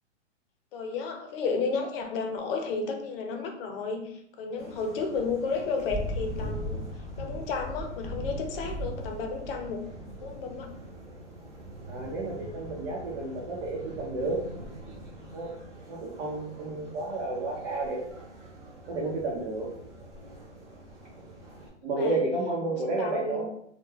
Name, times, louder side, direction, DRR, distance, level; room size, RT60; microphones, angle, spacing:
voice 1, 0.7-6.8 7.2-9.9 10.2-10.7 16.5-16.7 21.8-22.3 22.7-23.4, left 4 dB, 50° left, 4 dB, 0.6 m, -32 dB
sound 1, 4.6-21.7, right 2 dB, 10° right, 0.3 m, -46 dB
Thunder / Rain, 4.9-14.5, equal, 15° left, 0.7 m, -39 dB
voice 2, 11.9-14.4 15.3-15.5 15.9-18.0 18.9-19.7 21.8-23.4, right 2 dB, 60° right, -4 dB, 0.8 m, -31 dB
2.2 x 2.2 x 3.1 m, 0.70 s
hypercardioid pair, 130°, 36 cm